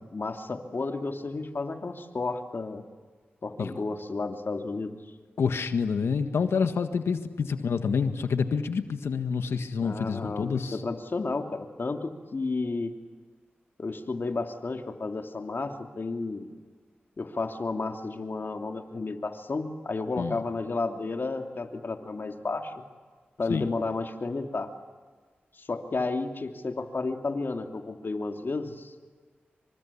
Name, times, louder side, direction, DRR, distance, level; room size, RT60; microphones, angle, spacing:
voice 1, 0.1-2.8 3.4-4.9 9.8-12.9 13.8-16.5 17.2-22.7 23.4-24.7 25.6-28.9, left 3 dB, 60° left, 4 dB, 2.8 m, -32 dB
voice 2, 5.4-10.8 20.2-20.4 23.5-23.7, left 5 dB, 85° left, 8 dB, 1.6 m, -28 dB
27.0 x 25.5 x 8.6 m, 1.5 s
cardioid pair, 40°, 4 cm